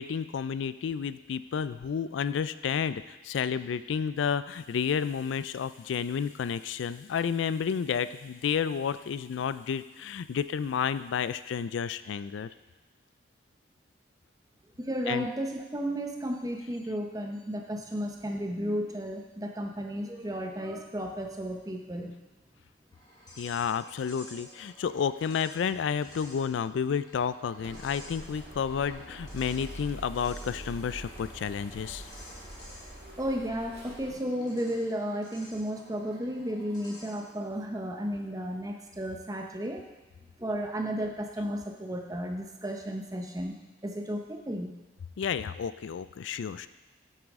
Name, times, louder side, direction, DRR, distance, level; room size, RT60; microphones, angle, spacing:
voice 1, 0.0-12.5 15.1-15.3 23.4-32.1 45.2-46.7, left 7 dB, 80° left, 14 dB, 0.3 m, -31 dB
voice 2, 14.8-22.1 33.2-39.8 40.4-43.6 43.8-44.7, equal, 20° right, 3 dB, 0.7 m, -33 dB
sound 1, 22.9-37.4, left 1 dB, 20° left, 2.8 m, -52 dB
sound 2, 27.6-34.1, right 1 dB, 60° right, 2.0 m, -44 dB
9.0 x 8.0 x 3.6 m, 1.1 s
head